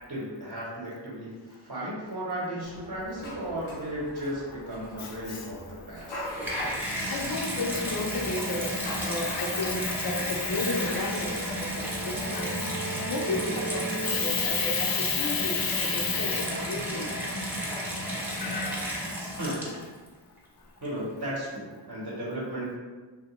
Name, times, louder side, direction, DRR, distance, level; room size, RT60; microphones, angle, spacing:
voice 1, 0.1-6.2 19.4-19.8 20.8-22.8, right 1 dB, 45° right, -7 dB, 0.8 m, -35 dB
sound 1, 2.6-12.4, left 1 dB, 85° left, 0.7 m, -42 dB
Water tap faucet / Bathtub (filling or washing), 6.0-20.1 20.8-20.9, equal, 5° right, 0.7 m, -33 dB
voice 2, 7.1-8.7 9.0-11.4 12.3-12.6 13.1-17.1 18.4-18.8, left 4 dB, 50° left, 2 dB, 0.5 m, -30 dB
sound 2, 11.2-16.7, right 4 dB, 80° right, 0.6 m, -40 dB
2.8 x 2.0 x 2.9 m, 1.4 s
cardioid pair, 40°, 47 cm